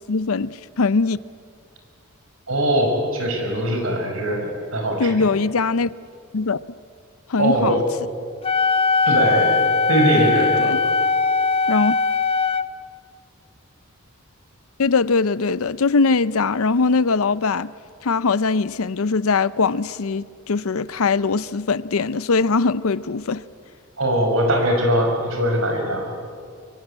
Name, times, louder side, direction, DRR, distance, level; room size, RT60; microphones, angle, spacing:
voice 1, 0.1-1.2 5.0-5.9 6.3-6.6 7.3-7.8 10.2-10.8 11.7-11.9 14.8-17.7 18.0-23.4, left 4 dB, 75° left, 0.6 m, -21 dB
voice 2, 2.5-5.3 7.4-7.8 9.1-9.6 9.9-10.7 24.0-26.1, right 1 dB, 65° right, 5.5 m, -21 dB
Wind instrument woodwind instrument, 8.4-12.7, left 4 dB, 25° left, 0.6 m, -20 dB
24.5 x 23.5 x 8.8 m
head